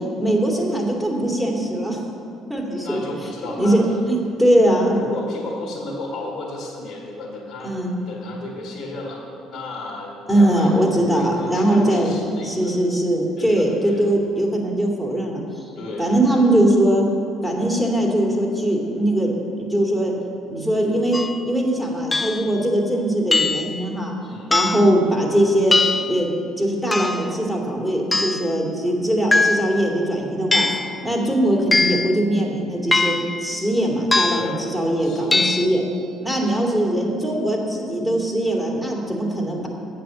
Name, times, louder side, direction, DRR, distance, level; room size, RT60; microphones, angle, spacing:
voice 1, 0.2-2.0 2.5-3.0 3.6-5.0 7.6-8.0 10.3-12.2 12.4-15.4 16.0-17.1 17.4-19.3 19.6-20.1 20.5-24.1 24.5-25.8 26.0-26.3 26.6-30.7 31.0-35.8 36.2-39.7, right 1 dB, 5° right, -2 dB, 2.5 m, -21 dB
voice 2, 2.8-4.0 4.5-7.8 8.1-12.8 13.4-14.0 15.8-16.1 24.2-24.6 31.0-31.2 34.3-34.6 35.0-35.5, left 2 dB, 60° left, -2 dB, 1.9 m, -34 dB
sound 1, 21.1-21.4 22.1-22.5 23.3-23.8 24.5-24.9 25.7-26.2 26.9-27.3 28.1-28.5 29.3-29.8 30.5-30.9 31.7-32.1 32.9-33.4 34.1-34.6 35.3-35.7, left 3 dB, 20° left, 0.5 m, -21 dB
7.7 x 7.7 x 6.8 m, 2.5 s
hypercardioid pair, 65°, 0 cm